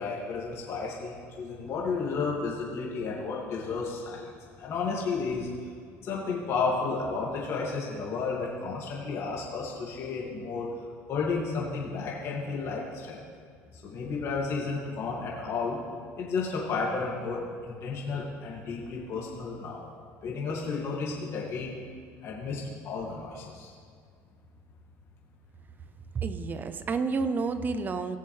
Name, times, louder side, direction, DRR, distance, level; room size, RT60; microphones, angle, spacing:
voice 1, 0.0-4.3 4.6-5.7 6.0-10.7 11.1-13.2 13.7-15.8 16.2-19.9 20.2-21.7 22.2-23.7, left 4 dB, 50° left, -4 dB, 2.1 m, -32 dB
voice 2, 26.1-28.2, right 4 dB, 35° right, 11 dB, 0.7 m, -30 dB
17.5 x 6.9 x 3.3 m, 2.1 s
supercardioid pair, 100°, 6 cm